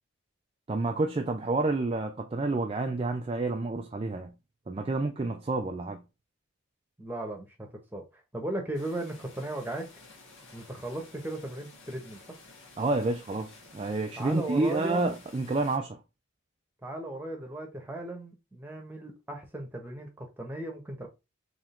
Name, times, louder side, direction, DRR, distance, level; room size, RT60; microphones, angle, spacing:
voice 1, 0.7-4.3 4.7-6.0 12.8-16.0, right 2 dB, 25° right, 0.3 m, -29 dB
voice 2, 7.0-7.5 7.9-8.0 8.3-9.8 10.5-12.2 14.1-15.0 16.8-21.1, right 1 dB, 10° right, 1.1 m, -36 dB
sound 1, 8.7-15.8, left 3 dB, 65° left, 1.8 m, -53 dB
3.7 x 3.1 x 4.3 m
head